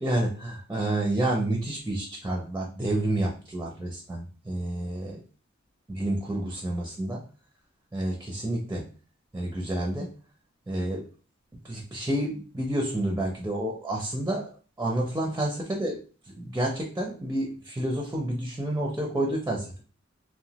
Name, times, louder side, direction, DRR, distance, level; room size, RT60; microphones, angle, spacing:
voice 1, 0.0-5.2 5.9-7.2 7.9-8.9 9.3-10.1 10.7-11.1 11.6-14.5 14.8-16.0 16.4-19.7, right 1 dB, 10° right, 0 dB, 0.4 m, -29 dB
2.9 x 2.2 x 2.8 m, 0.37 s
head